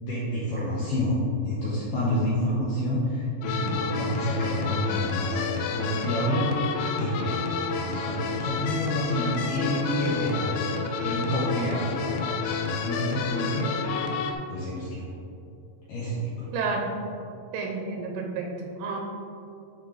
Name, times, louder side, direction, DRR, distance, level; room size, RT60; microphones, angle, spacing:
voice 1, 0.0-5.4 5.7-6.5 7.0-7.4 7.7-10.6 11.0-13.9 14.5-15.1 15.9-16.5, equal, 75° left, -8 dB, 2.0 m, -28 dB
sound 1, 3.4-14.3, left 4 dB, 90° left, 3.0 m, -30 dB
voice 2, 16.5-16.9 17.5-19.0, right 4 dB, 85° right, 1 dB, 2.7 m, -30 dB
12.0 x 4.2 x 3.3 m, 2.7 s
omnidirectional pair, 5.3 m